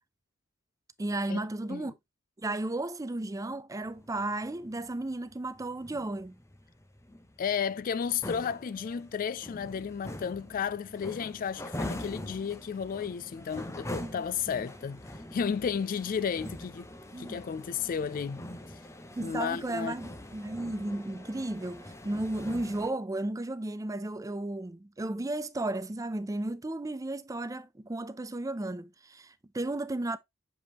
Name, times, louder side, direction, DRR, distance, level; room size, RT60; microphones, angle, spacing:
voice 1, 1.0-1.9 2.4-6.4 14.0-14.7 17.1-17.4 19.2-30.2, right 2 dB, 15° right, 0.5 m, -34 dB
sound 1, 3.8-22.9, left 1 dB, 15° left, 0.8 m, -44 dB
voice 2, 7.4-15.0 15.3-16.9 17.2-18.5 19.2-19.9, left 7 dB, 40° left, 0.3 m, -33 dB
6.9 x 5.1 x 2.9 m
head